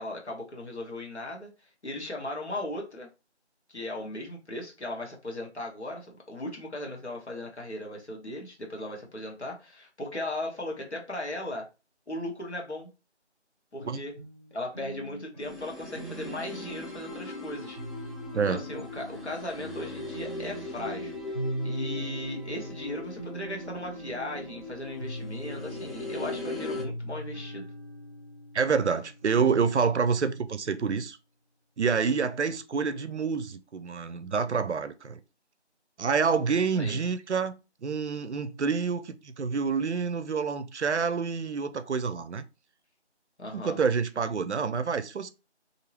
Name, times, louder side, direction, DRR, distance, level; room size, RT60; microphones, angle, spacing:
voice 1, 0.0-3.1 3.7-11.7 12.1-12.9 13.7-14.2 14.5-17.8 18.3-21.2 21.6-27.7 36.7-37.0 43.4-43.8, left 1 dB, 70° left, 1.2 m, -37 dB
sound 1, 13.8-30.0, right 1 dB, 40° left, 1.2 m, -41 dB
sound 2, 15.4-26.9, left 2 dB, ahead, 0.4 m, -39 dB
voice 2, 28.5-31.2 31.8-35.2 36.0-42.4 43.5-45.3, right 5 dB, 75° right, 0.5 m, -27 dB
2.7 x 2.1 x 2.8 m
figure-of-eight pair, 180°, 35 cm